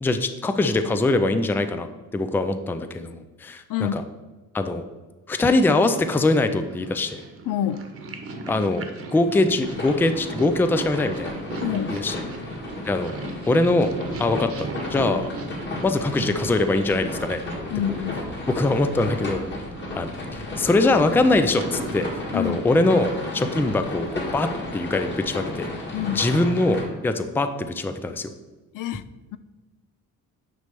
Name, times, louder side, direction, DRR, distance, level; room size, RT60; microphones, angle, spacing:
voice 1, 0.0-1.9 2.1-4.0 4.5-4.8 5.3-7.2 8.5-8.8 9.1-11.4 11.9-12.1 12.9-13.1 13.5-13.9 14.2-15.3 15.8-17.4 18.5-19.4 20.0-22.1 22.3-25.7 26.1-28.3, left 2 dB, 5° left, 8 dB, 0.3 m, -22 dB
voice 2, 3.7-4.0 7.5-7.9 11.6-12.0 17.7-18.3 22.3-22.6 25.9-26.3 28.7-29.0 29.3-29.4, left 11 dB, 75° left, 13 dB, 0.5 m, -27 dB
Purr, 5.9-23.6, right 3 dB, 45° right, 1.0 m, -38 dB
sound 1, 9.6-26.8, left 2 dB, 35° left, 1.7 m, -34 dB
9.5 x 3.3 x 6.7 m, 1.2 s
wide cardioid pair, 160°, 32 cm